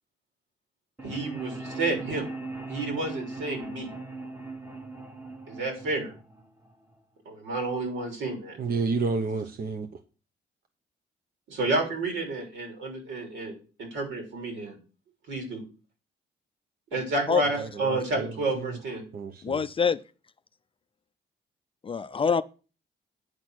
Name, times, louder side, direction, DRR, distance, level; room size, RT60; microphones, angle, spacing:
sound 1, 1.0-7.0, right 3 dB, 10° right, 1.2 m, -39 dB
voice 1, 1.0-2.3 2.7-3.9 5.5-6.1 7.2-8.6 11.5-14.7 15.3-15.6 16.9-19.0, right 2 dB, 80° right, 3.2 m, -30 dB
voice 2, 8.5-10.0 17.6-18.8 19.1-19.7, right 4 dB, 50° right, 0.8 m, -31 dB
voice 3, 19.4-20.0 21.8-22.4, left 6 dB, 25° left, 0.4 m, -25 dB
9.1 x 4.2 x 6.2 m
cardioid pair, 90°, 20 cm